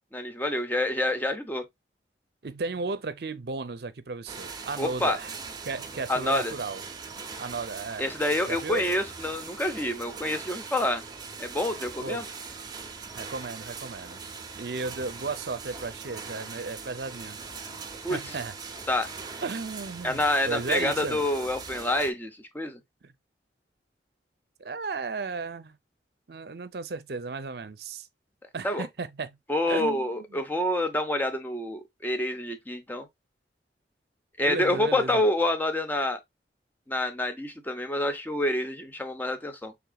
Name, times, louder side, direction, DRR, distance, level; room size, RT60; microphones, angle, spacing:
voice 1, 0.1-1.7 4.8-5.2 6.1-6.5 8.0-11.0 11.4-12.2 18.0-18.3 18.9-19.1 20.0-22.8 28.6-28.9 29.5-33.1 34.4-36.2 36.9-39.7, left 1 dB, 10° left, 0.7 m, -27 dB
voice 2, 2.4-5.3 5.6-6.8 7.4-8.1 8.5-8.9 12.0-12.2 13.1-14.2 14.6-17.4 18.1-18.5 19.4-21.3 23.0-23.1 24.6-25.8 26.3-28.1 28.5-29.4 29.7-30.0 30.3-30.4 34.4-35.2, right 3 dB, 60° right, 0.6 m, -34 dB
sound 1, 4.3-22.1, right 5 dB, 20° right, 0.8 m, -41 dB
5.9 x 3.5 x 2.3 m
head